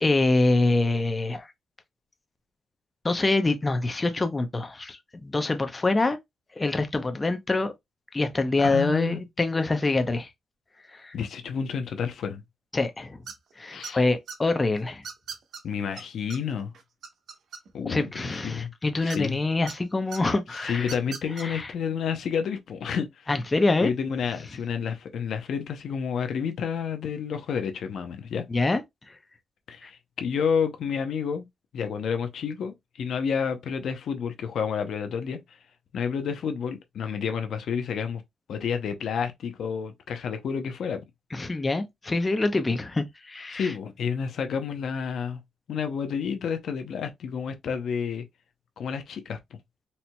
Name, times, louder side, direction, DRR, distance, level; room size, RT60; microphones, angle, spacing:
voice 1, 0.0-1.5 3.0-6.2 6.5-7.7 8.1-10.3 11.0-11.1 12.7-13.2 13.6-15.0 17.8-20.9 21.4-21.7 23.3-23.9 28.5-28.8 29.8-29.9 41.3-43.7, left 2 dB, 25° left, 0.6 m, -25 dB
voice 2, 8.6-9.2 11.1-12.4 13.7-14.0 15.6-16.7 17.7-18.7 19.0-19.4 20.5-23.3 23.8-28.5 29.7-31.4 31.7-35.6 35.9-38.2 38.5-41.0 43.5-45.4 45.7-48.2 48.8-49.6, left 6 dB, 75° left, 0.6 m, -30 dB
sound 1, 13.3-13.5 13.8-14.4 15.0-15.6 16.0-16.1 16.3-16.4 16.7-17.9 19.1-19.7 20.1-20.2 20.8-21.4, right 5 dB, 75° right, 0.8 m, -38 dB
4.3 x 2.7 x 2.2 m
cardioid pair, 85°, 0 cm